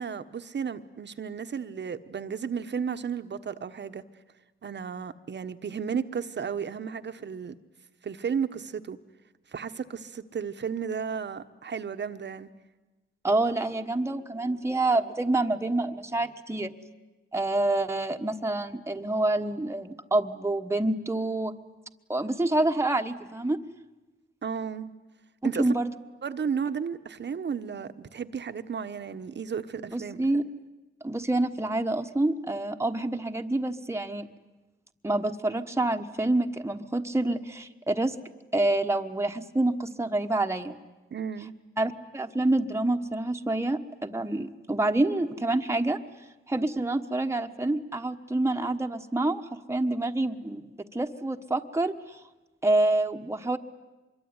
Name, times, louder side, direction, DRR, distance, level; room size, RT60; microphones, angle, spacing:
voice 1, 0.0-4.0 4.6-7.5 8.0-9.0 9.5-12.5 24.4-24.9 25.4-25.7 26.2-30.2 41.1-41.5, right 6 dB, 55° right, 10 dB, 1.2 m, -33 dB
voice 2, 13.2-16.7 17.3-21.5 22.1-23.6 25.6-25.9 29.9-30.4 31.0-34.3 35.0-38.1 38.5-40.8 41.8-46.0 46.5-52.2 52.6-53.6, right 2 dB, 10° right, 5 dB, 1.4 m, -27 dB
25.0 x 23.0 x 9.7 m, 1.1 s
cardioid pair, 80°, 21 cm